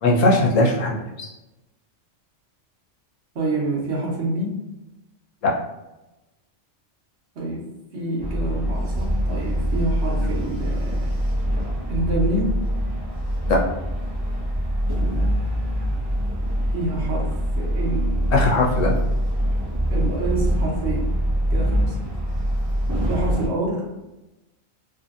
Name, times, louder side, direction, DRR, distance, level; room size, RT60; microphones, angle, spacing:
voice 1, 0.0-1.3 5.4-5.5 13.5-13.6 18.3-19.0, left 2 dB, 80° left, -2 dB, 1.1 m, -19 dB
voice 2, 3.3-4.5 7.3-7.7 7.9-11.1 11.9-12.5 14.9-15.3 16.7-18.4 19.9-21.2 21.5-22.0 23.1-23.9, right 2 dB, 60° right, -3 dB, 1.1 m, -27 dB
sound 1, 8.2-23.5, equal, 25° right, 0.6 m, -24 dB
2.7 x 2.6 x 2.4 m, 0.98 s
omnidirectional pair, 1.3 m